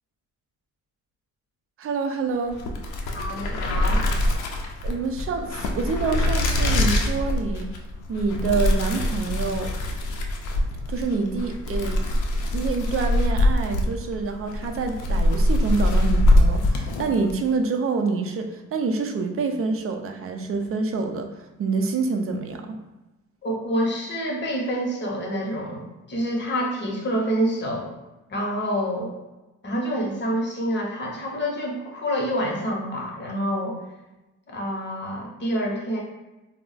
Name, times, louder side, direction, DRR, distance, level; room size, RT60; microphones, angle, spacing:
voice 1, 1.8-2.6 4.8-7.7 8.1-9.7 10.9-12.0 12.5-22.8, right 4 dB, 50° right, 5 dB, 0.4 m, -27 dB
sound 1, 2.5-17.4, left 1 dB, 80° left, 0.5 m, -23 dB
voice 2, 3.1-4.0 23.4-27.9 28.3-29.1 29.6-33.8 34.5-36.0, equal, 35° left, -1 dB, 0.8 m, -27 dB
2.3 x 2.0 x 3.8 m, 1.1 s
cardioid pair, 90°, 30 cm